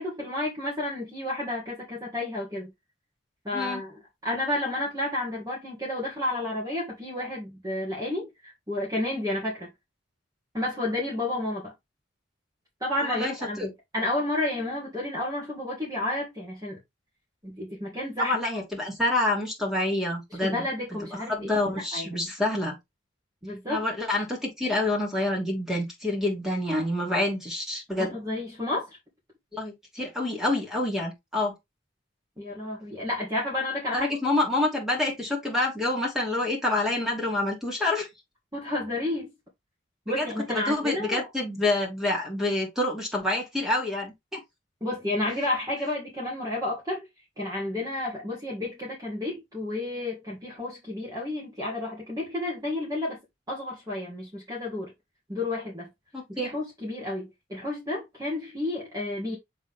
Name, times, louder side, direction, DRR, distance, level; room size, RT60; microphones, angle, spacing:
voice 1, 0.0-2.7 3.5-3.9 4.2-9.7 10.5-11.7 12.8-13.7 13.9-16.8 17.4-18.4 20.4-22.3 23.4-23.9 28.0-28.9 32.4-34.1 38.5-39.3 40.1-41.3 44.8-47.0 47.4-53.2 53.5-54.9 55.3-55.9 56.3-59.4, left 1 dB, 20° right, 2.1 m, -31 dB
voice 2, 13.0-13.7 18.2-20.6 21.3-22.8 23.7-28.2 29.5-31.5 33.9-38.1 40.2-44.4 56.1-56.5, left 2 dB, ahead, 2.8 m, -27 dB
7.2 x 3.9 x 3.6 m
head